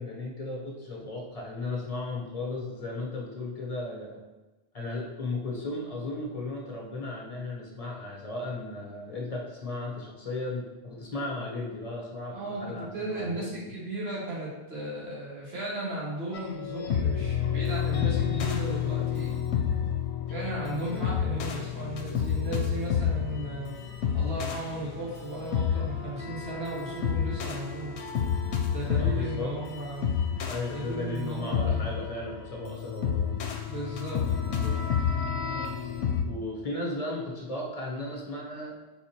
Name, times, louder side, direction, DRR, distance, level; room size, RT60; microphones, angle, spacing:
voice 1, 0.0-4.2 4.7-13.5 29.0-29.5 30.4-33.3 36.3-38.8, left 2 dB, 35° left, -2 dB, 0.9 m, -35 dB
voice 2, 12.3-19.3 20.3-23.7 24.1-27.9 28.7-30.1 30.7-31.9 33.7-34.8, right 2 dB, 65° right, -6 dB, 1.7 m, -36 dB
sound 1, 16.3-36.2, left 8 dB, 80° left, 0.9 m, -30 dB
4.7 x 4.0 x 2.8 m, 1.1 s
omnidirectional pair, 1.1 m